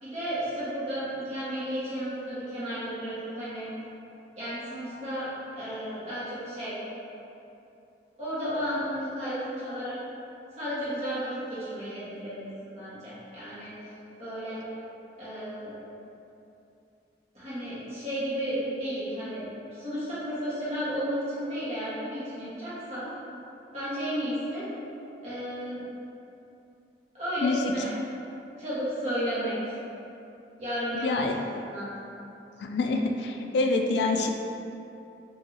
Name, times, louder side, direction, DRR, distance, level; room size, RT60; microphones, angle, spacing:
voice 1, 0.0-3.7 4.3-6.8 8.2-10.0 10.5-13.7 14.2-14.6 15.2-15.7 17.3-23.1 23.7-24.6 25.2-25.8 27.1-27.9 28.6-29.6 30.6-31.3 31.6-31.9, equal, 40° right, -12 dB, 1.5 m, -33 dB
voice 2, 31.0-31.3 32.6-34.3, left 3 dB, 70° left, 4 dB, 0.3 m, -26 dB
4.6 x 2.7 x 2.8 m, 2.8 s
head